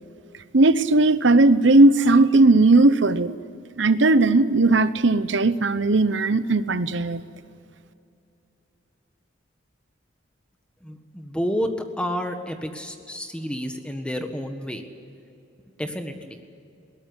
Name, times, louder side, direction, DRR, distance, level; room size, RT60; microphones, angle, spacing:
voice 1, 0.5-3.3 3.8-7.2, right 2 dB, 65° right, 14 dB, 0.9 m, -17 dB
voice 2, 10.8-14.8 15.8-16.4, equal, 5° left, 6 dB, 1.5 m, -30 dB
21.5 x 18.5 x 9.7 m, 2.7 s
head